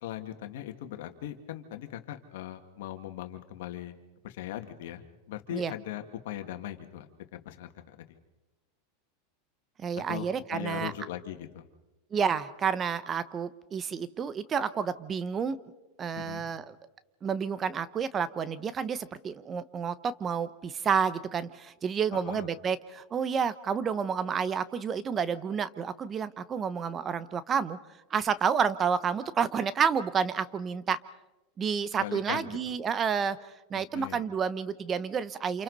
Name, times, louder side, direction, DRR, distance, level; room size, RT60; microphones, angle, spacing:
voice 1, 0.0-4.0 4.2-7.1 7.5-8.0 10.1-11.6 16.2-16.4 22.3-22.5 32.0-32.5 33.9-34.2, left 12 dB, 75° left, 6 dB, 2.1 m, -39 dB
voice 2, 9.8-10.9 12.1-15.6 16.0-16.7 17.2-27.8 28.1-31.0 31.6-33.4 33.7-35.6, right 6 dB, 25° right, 15 dB, 0.9 m, -30 dB
28.5 x 28.0 x 4.2 m, 1.0 s
supercardioid pair, 120°, 0 cm